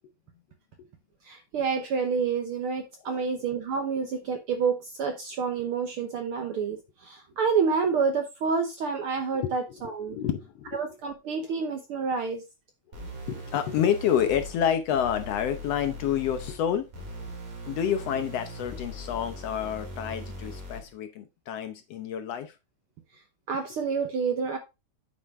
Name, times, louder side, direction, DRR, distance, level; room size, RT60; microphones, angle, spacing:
voice 1, 1.2-10.2 10.7-12.4 23.5-24.6, right 5 dB, 65° right, 1.4 m, -28 dB
voice 2, 3.0-3.3 9.3-11.0 11.3-11.6 13.3-16.8 17.2-17.3 17.7-22.6, left 9 dB, 70° left, 1.6 m, -29 dB
sound 1, 12.9-20.9, equal, 85° right, 4.5 m, -40 dB
9.4 x 5.0 x 3.5 m
omnidirectional pair, 3.3 m